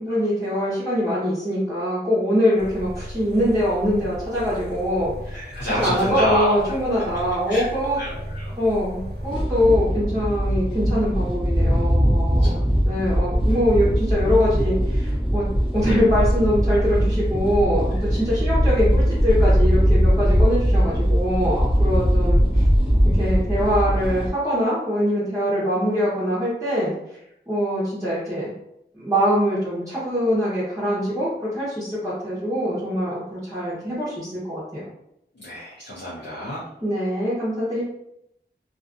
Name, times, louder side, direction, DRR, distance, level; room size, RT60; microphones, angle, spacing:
voice 1, 0.0-8.0 8.6-15.5 15.7-22.6 23.1-27.2 27.5-28.5 28.9-34.8 36.8-37.8, equal, 15° right, -11 dB, 0.9 m, -23 dB
sound 1, 2.6-9.5, equal, 60° right, 0.5 m, -36 dB
voice 2, 5.3-6.5 7.5-7.7 8.0-8.5 12.4-12.6 35.3-36.6, equal, 85° left, -7 dB, 0.7 m, -28 dB
sound 2, 9.3-24.3, equal, 25° left, 0.7 m, -20 dB
2.5 x 2.3 x 2.5 m, 0.81 s
wide cardioid pair, 45°, 19 cm